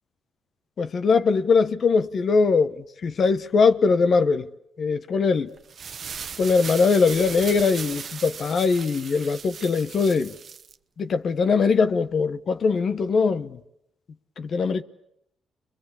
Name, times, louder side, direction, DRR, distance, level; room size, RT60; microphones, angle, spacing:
voice 1, 0.8-4.5 4.8-5.5 6.4-10.3 11.0-13.6 14.4-14.8, left 4 dB, 50° left, 1.0 m, -21 dB
sound 1, 5.6-10.7, right 6 dB, 50° right, 1.1 m, -37 dB
29.0 x 23.0 x 8.4 m
cardioid pair, 90°, 0 cm